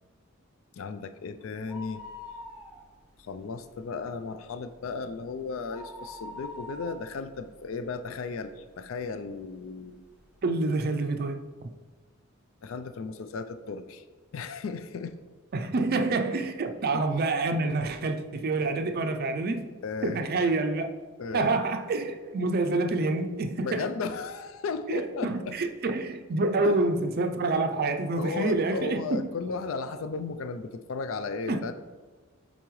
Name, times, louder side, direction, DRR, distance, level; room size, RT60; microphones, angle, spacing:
voice 1, 0.8-2.0 3.2-10.0 12.6-14.0 14.3-15.2 16.9-17.0 19.8-20.2 21.2-21.5 23.6-25.6 26.6-26.8 28.2-31.7, left 4 dB, 75° left, 10 dB, 0.4 m, -35 dB
sound 1, 1.5-3.2 3.5-3.6 4.1-8.5 9.0-9.1 9.9-10.0 10.2-10.3, left 2 dB, 5° right, 0.8 m, -44 dB
voice 2, 10.4-11.7 15.5-19.7 20.0-20.9 21.3-23.9 24.9-29.2 31.5-31.7, right 3 dB, 50° right, 6 dB, 0.4 m, -27 dB
8.2 x 4.0 x 3.1 m, 1.3 s
head